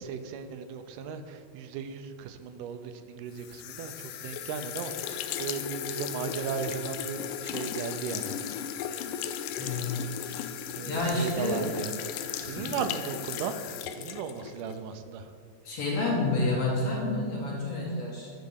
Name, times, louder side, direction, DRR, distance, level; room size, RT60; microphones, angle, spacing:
voice 1, 0.0-8.3 10.8-11.9 12.4-13.5 13.8-15.3, right 6 dB, 85° right, 9 dB, 2.1 m, -36 dB
sound 1, 3.4-14.8, left 9 dB, 90° left, 2.1 m, -36 dB
voice 2, 9.6-10.5 10.8-11.6 12.5-12.8 15.6-18.3, left 2 dB, 55° left, -4 dB, 2.4 m, -29 dB
10.5 x 3.9 x 6.5 m, 2.2 s
omnidirectional pair, 3.6 m